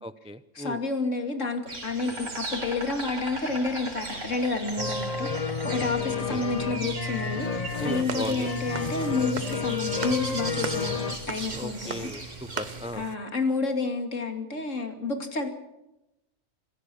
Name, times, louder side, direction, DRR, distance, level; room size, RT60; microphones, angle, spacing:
voice 1, 0.0-0.8 6.3-6.4 7.8-8.5 11.5-13.0, equal, 5° right, 13 dB, 0.5 m, -36 dB
voice 2, 0.5-5.3 5.6-12.1 12.9-15.5, left 3 dB, 70° left, 5 dB, 2.9 m, -30 dB
Insect, 1.7-12.9, right 2 dB, 65° right, 4.2 m, -38 dB
sound 1, 4.8-11.2, left 5 dB, 35° left, 0.9 m, -31 dB
sound 2, 7.7-13.2, right 5 dB, 35° right, 1.0 m, -39 dB
27.0 x 15.0 x 7.0 m, 0.92 s
omnidirectional pair, 1.4 m